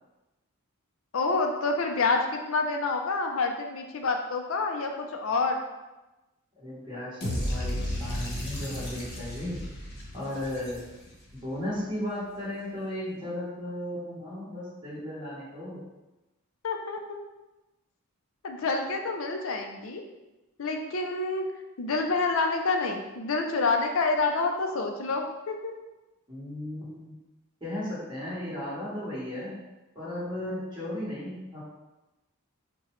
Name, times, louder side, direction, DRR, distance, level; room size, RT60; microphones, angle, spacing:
voice 1, 1.1-5.6 16.6-17.2 18.4-20.0 20.6-21.5 21.8-25.7, left 3 dB, 70° left, 4 dB, 0.5 m, -28 dB
voice 2, 6.6-9.6 10.1-10.8 11.3-15.8 26.3-27.1 27.6-29.6 29.9-31.6, left 1 dB, 20° right, -9 dB, 1.5 m, -35 dB
sound 1, 7.2-11.3, equal, 50° left, 0.9 m, -34 dB
4.7 x 2.2 x 3.0 m, 1.0 s
head